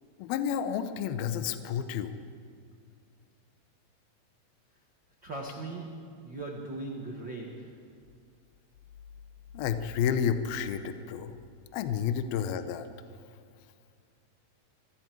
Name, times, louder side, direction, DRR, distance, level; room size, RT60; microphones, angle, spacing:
voice 1, 0.2-2.2 9.5-11.3 11.7-12.9, left 8 dB, 80° left, 10 dB, 2.2 m, -30 dB
voice 2, 5.2-7.7, right 2 dB, 80° right, 0 dB, 1.0 m, -39 dB
27.5 x 22.5 x 4.6 m, 2.2 s
omnidirectional pair, 5.3 m